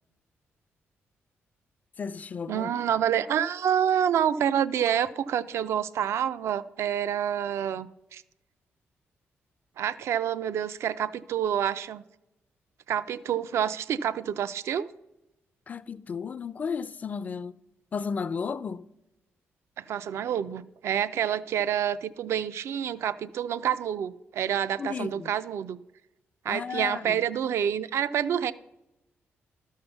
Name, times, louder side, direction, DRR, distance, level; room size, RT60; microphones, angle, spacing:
voice 1, 2.0-2.7 15.7-17.6 17.9-18.9 24.8-25.3 26.5-27.2, left 6 dB, 35° left, 0.4 m, -33 dB
voice 2, 2.5-8.2 9.8-12.0 12.9-14.9 19.8-25.8 26.4-28.5, right 9 dB, 75° right, 0.4 m, -28 dB
12.5 x 5.6 x 6.8 m
cardioid pair, 130°, 5 cm